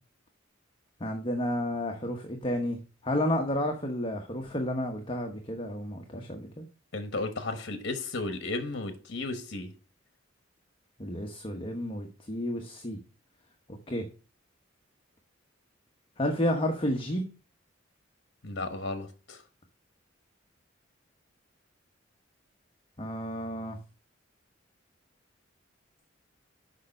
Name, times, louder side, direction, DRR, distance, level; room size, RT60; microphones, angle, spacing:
voice 1, 1.0-2.8 3.0-6.7 11.0-13.0 13.9-14.1 16.2-17.3 23.0-23.8, left 1 dB, 25° left, 1.0 m, -31 dB
voice 2, 6.9-9.7 18.4-19.4, left 2 dB, 60° left, 1.2 m, -34 dB
6.6 x 5.4 x 6.4 m
head